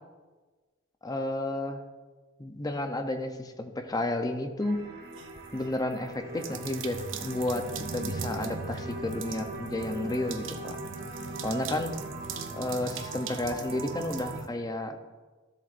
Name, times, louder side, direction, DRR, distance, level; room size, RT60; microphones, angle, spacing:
voice 1, 1.0-1.8 2.4-4.8 5.5-7.6 7.9-10.8 11.4-11.9 12.5-15.0, left 1 dB, 20° left, 6 dB, 0.7 m, -32 dB
sound 1, 4.6-14.4, right 2 dB, 55° right, 1.2 m, -41 dB
sound 2, 5.1-5.7 6.4-14.5, right 4 dB, 80° right, 0.7 m, -39 dB
13.0 x 7.4 x 2.6 m, 1.3 s
head